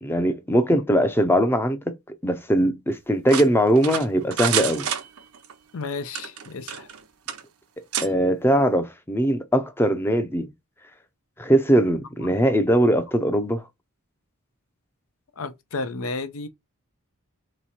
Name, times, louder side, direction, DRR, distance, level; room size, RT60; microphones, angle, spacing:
voice 1, 0.0-1.8 2.2-4.9 8.0-10.5 11.4-13.6, equal, 10° left, 0.6 m, -21 dB
sound 1, 3.3-5.5 6.1-7.0 7.3-7.4 7.9-8.1, right 8 dB, 75° right, 0.7 m, -28 dB
voice 2, 5.7-6.9 15.4-16.5, left 3 dB, 70° left, 0.6 m, -32 dB
3.3 x 3.1 x 4.2 m
head